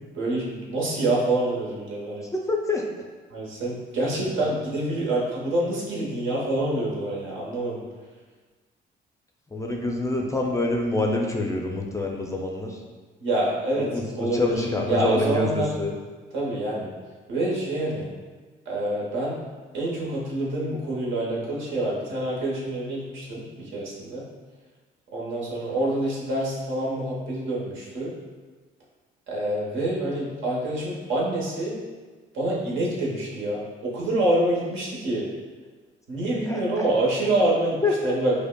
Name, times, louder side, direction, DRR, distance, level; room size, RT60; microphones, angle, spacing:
voice 1, 0.1-2.3 3.3-7.8 13.2-14.5 14.8-15.7 16.3-16.9 17.3-18.1 18.7-19.4 19.7-24.2 25.1-28.1 29.3-31.8 32.3-35.3 36.1-38.3, right 1 dB, 75° right, -4 dB, 1.0 m, -26 dB
voice 2, 2.3-2.8 4.1-4.5 9.5-12.8 13.8-15.9 36.4-36.9 37.8-38.1, left 2 dB, 15° left, 1 dB, 0.4 m, -26 dB
5.2 x 2.1 x 2.2 m, 1.4 s
cardioid pair, 90°, 20 cm